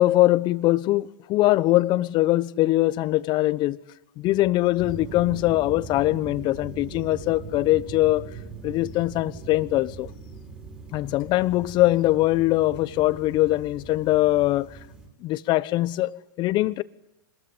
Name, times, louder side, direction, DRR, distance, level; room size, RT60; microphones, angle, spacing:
voice 1, 0.0-3.8 4.2-8.3 8.6-10.1 10.9-14.8 15.2-16.8, left 17 dB, 40° left, 1.1 m, -22 dB
sound 1, 4.8-15.1, right 4 dB, 10° right, 4.6 m, -41 dB
26.0 x 21.5 x 9.7 m
hypercardioid pair, 110°, 12 cm